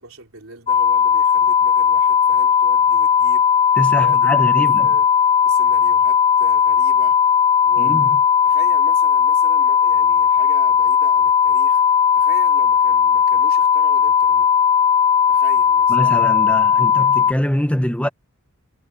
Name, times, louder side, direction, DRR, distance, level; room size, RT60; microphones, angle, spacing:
voice 1, 0.0-3.4 3.9-5.1 5.4-7.2 7.6-8.2 8.4-11.8 12.1-14.5 15.3-16.0, right 2 dB, 70° right, 3.9 m, -39 dB
sound 1, 0.7-17.3, left 7 dB, 25° left, 0.7 m, -16 dB
voice 2, 3.8-4.9 7.8-8.2 15.9-18.1, equal, 5° left, 1.2 m, -23 dB
head